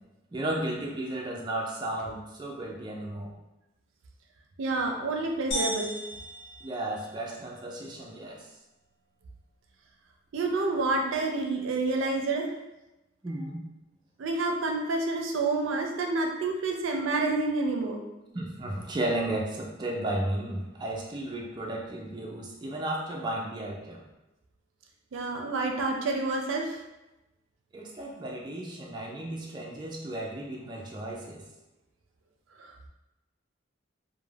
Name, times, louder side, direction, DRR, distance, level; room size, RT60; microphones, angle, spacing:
voice 1, 0.3-3.3 6.6-8.4 13.2-13.6 18.3-24.0 27.7-31.4, right 1 dB, 25° right, -2 dB, 0.4 m, -34 dB
voice 2, 4.6-5.9 10.3-12.5 14.2-18.0 25.1-26.8 32.6-32.7, right 3 dB, 80° right, 2 dB, 0.4 m, -28 dB
sound 1, 5.5-7.5, equal, 70° left, 0.7 m, -35 dB
2.4 x 2.1 x 3.2 m, 0.99 s
head